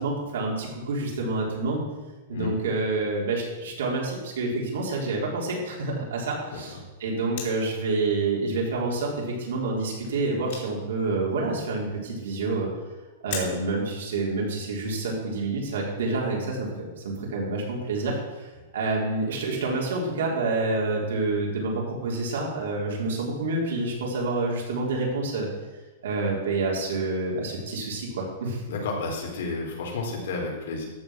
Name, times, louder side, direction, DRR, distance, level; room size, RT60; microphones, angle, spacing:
voice 1, 0.0-1.8 2.3-12.7 13.2-18.5 18.7-25.5 26.0-28.6, right 3 dB, 85° right, -2 dB, 4.1 m, -28 dB
sound 1, 7.3-7.8 8.6-8.7 9.3-9.4 9.6-9.7 10.0-11.0 11.3-11.4 12.7-12.9 13.3-13.9 14.4-14.5, left 5 dB, 50° left, 3.5 m, -37 dB
voice 2, 28.7-30.8, left 3 dB, 80° left, 0 dB, 3.7 m, -31 dB
14.0 x 6.3 x 6.1 m, 1.2 s
supercardioid pair, 160°, 0 cm